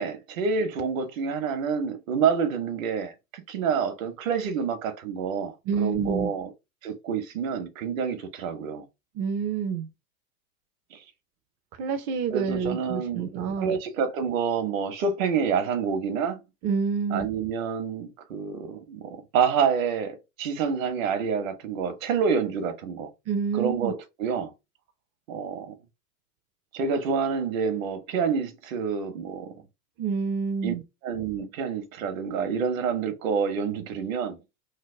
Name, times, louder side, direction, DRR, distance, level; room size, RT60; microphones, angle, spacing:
voice 1, 0.0-6.5 6.8-8.8 10.9-11.0 12.3-13.3 13.6-16.4 17.1-23.1 23.5-24.5 25.3-25.7 26.7-29.5 30.6-30.7 31.0-34.4, right 6 dB, 65° right, 1.0 m, -28 dB
voice 2, 5.7-6.3 9.2-9.9 11.8-13.7 16.6-17.3 23.3-23.9 30.0-30.8, right 6 dB, 25° right, 0.4 m, -28 dB
3.3 x 2.1 x 3.2 m
hypercardioid pair, 110°, 44 cm